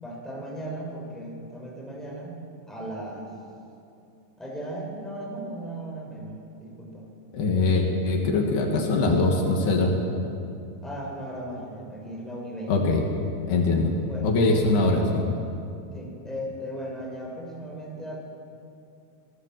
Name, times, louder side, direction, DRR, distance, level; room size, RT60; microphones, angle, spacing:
voice 1, 0.0-3.3 4.4-7.1 10.8-12.7 14.1-14.4 15.9-18.2, right 1 dB, ahead, -2 dB, 5.9 m, -37 dB
voice 2, 7.3-9.9 12.7-13.0 13.5-13.9 14.2-15.3, left 3 dB, 75° left, 1 dB, 4.5 m, -22 dB
28.0 x 19.5 x 7.8 m, 2.6 s
omnidirectional pair, 4.6 m